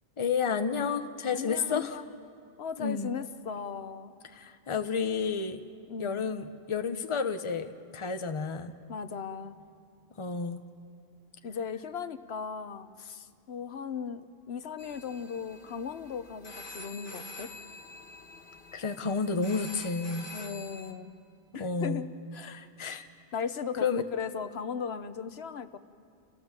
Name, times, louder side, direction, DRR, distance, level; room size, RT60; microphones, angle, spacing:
voice 1, 0.2-2.0 2.8-3.1 4.3-5.6 6.0-8.7 10.2-10.6 18.7-20.3 21.5-22.0 22.5-23.0 23.8-24.1, left 5 dB, 30° left, 8 dB, 0.9 m, -31 dB
voice 2, 1.3-2.2 2.6-4.1 5.9-6.3 8.9-9.6 11.4-17.5 20.3-21.1 21.5-22.6 23.3-25.8, left 6 dB, 80° left, 11 dB, 1.0 m, -37 dB
sound 1, 14.8-20.9, left 2 dB, 55° left, 1.5 m, -46 dB
28.5 x 16.5 x 7.4 m, 2.4 s
omnidirectional pair, 1.1 m